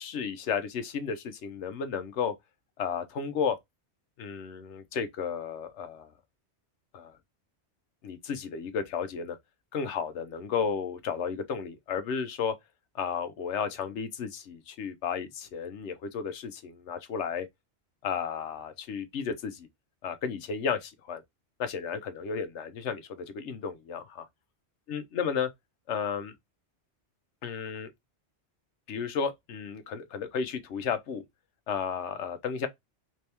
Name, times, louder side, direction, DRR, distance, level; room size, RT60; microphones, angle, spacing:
voice 1, 0.0-2.3 2.8-3.6 4.2-6.1 6.9-7.2 8.0-9.4 9.7-12.5 12.9-17.5 18.0-19.7 20.0-21.2 21.6-24.3 24.9-25.5 25.9-26.3 27.4-27.9 28.9-31.2 31.7-32.7, left 6 dB, 85° left, 1.0 m, -33 dB
3.5 x 3.3 x 2.8 m
omnidirectional pair, 1.2 m